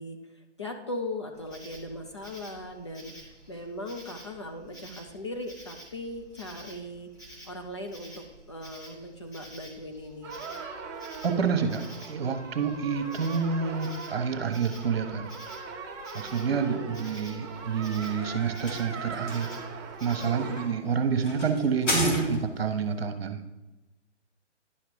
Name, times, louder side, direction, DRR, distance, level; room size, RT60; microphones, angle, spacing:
voice 1, 0.0-7.1 7.4-10.3 16.5-17.0 20.2-20.6, left 1 dB, 25° left, 3 dB, 0.5 m, -39 dB
Insect, 1.3-20.5, right 1 dB, 10° left, 1.3 m, -50 dB
sound 1, 10.2-20.7, right 4 dB, 20° right, 1.0 m, -40 dB
voice 2, 11.2-15.3 16.1-19.5 20.0-23.4, right 6 dB, 55° right, 7 dB, 1.2 m, -28 dB
sound 2, 17.6-22.7, equal, 80° left, 2.9 m, -34 dB
10.5 x 5.7 x 5.0 m, 1.0 s
figure-of-eight pair, 140°, 36 cm